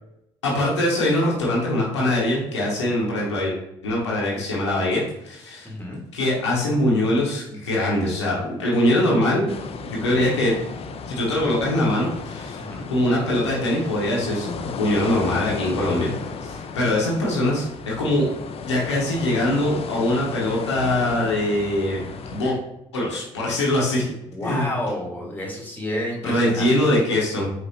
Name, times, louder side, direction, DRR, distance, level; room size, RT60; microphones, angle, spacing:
voice 1, 0.4-3.5 3.8-5.7 6.1-9.5 9.8-10.5 11.1-12.6 12.9-16.1 16.4-18.3 18.6-22.0 22.3-22.6 22.9-24.1 24.4-24.6 26.2-27.5, left 1 dB, 90° left, -4 dB, 1.0 m, -22 dB
voice 2, 5.6-6.0 10.1-10.3 12.5-12.9 24.3-27.0, left 1 dB, 15° left, -1 dB, 1.7 m, -30 dB
sound 1, 9.5-22.5, left 5 dB, 45° left, 0.5 m, -34 dB
5.1 x 3.6 x 2.9 m, 0.83 s
hypercardioid pair, 50°, 14 cm